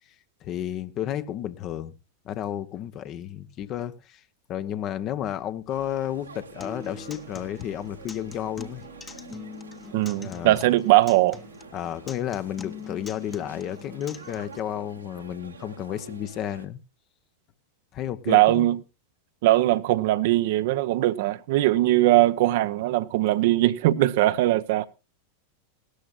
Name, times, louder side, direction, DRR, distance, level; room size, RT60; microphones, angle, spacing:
voice 1, 0.4-1.9 2.2-4.2 4.5-8.8 10.2-10.6 11.7-16.8 17.9-18.7, left 11 dB, 35° left, 1.0 m, -32 dB
sound 1, 5.7-16.7, right 4 dB, 75° right, 1.7 m, -47 dB
Acoustic guitar, 6.6-14.6, left 4 dB, 15° left, 1.2 m, -44 dB
voice 2, 9.9-11.4 18.3-18.8 19.4-24.9, right 16 dB, 50° right, 0.8 m, -20 dB
18.5 x 13.0 x 2.4 m
figure-of-eight pair, 90°, 0 cm